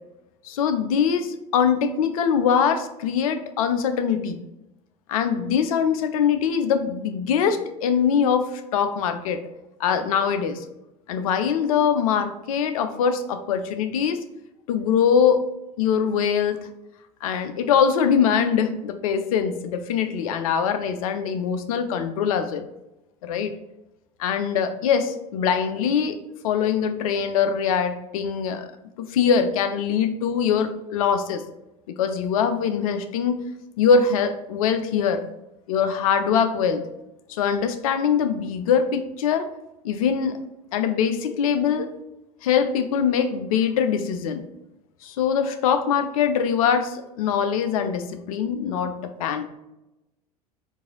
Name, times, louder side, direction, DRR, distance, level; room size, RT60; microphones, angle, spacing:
voice 1, 0.4-4.4 5.1-9.4 9.8-10.6 11.1-14.2 14.7-15.4 15.8-16.7 17.2-22.7 23.3-23.5 24.2-26.2 26.4-28.7 29.0-31.4 31.9-33.4 33.8-35.2 35.7-36.8 37.3-39.5 39.8-40.4 40.7-41.9 42.4-44.4 45.0-49.4, left 7 dB, 65° left, 9 dB, 0.6 m, -23 dB
4.6 x 2.7 x 3.8 m, 0.94 s
figure-of-eight pair, 75°, 20 cm